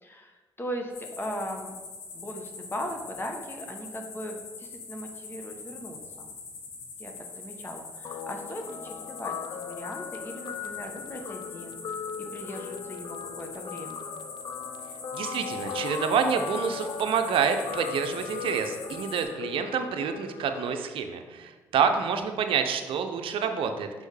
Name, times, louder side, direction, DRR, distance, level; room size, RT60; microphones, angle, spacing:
voice 1, 0.0-1.8 2.1-6.3 7.0-11.8 12.2-14.1 22.1-22.2, equal, 20° left, 3 dB, 1.0 m, -38 dB
sound 1, 0.9-19.2, left 4 dB, 90° left, 0.9 m, -43 dB
Guitar, 8.0-20.8, left 7 dB, 50° left, 0.5 m, -38 dB
voice 2, 15.1-23.9, right 6 dB, 65° right, 7 dB, 0.6 m, -28 dB
6.3 x 5.1 x 3.3 m, 1.3 s
hypercardioid pair, 45°, 10 cm